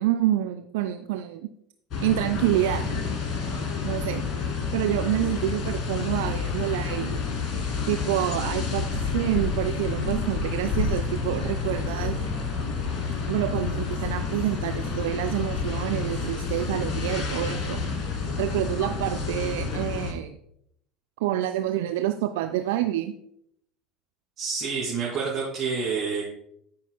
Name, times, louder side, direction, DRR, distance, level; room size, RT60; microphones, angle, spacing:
voice 1, 0.0-1.5 2.0-3.0 3.8-4.3 4.7-7.2 7.9-12.2 13.3-17.8 18.4-20.4 21.2-23.1, right 13 dB, 60° right, 8 dB, 0.3 m, -27 dB
sound 1, 1.9-20.1, left 4 dB, 40° left, 1.4 m, -29 dB
voice 2, 24.4-26.2, right 5 dB, 35° right, -6 dB, 2.6 m, -28 dB
13.0 x 5.6 x 2.2 m, 0.74 s
figure-of-eight pair, 65°, 0 cm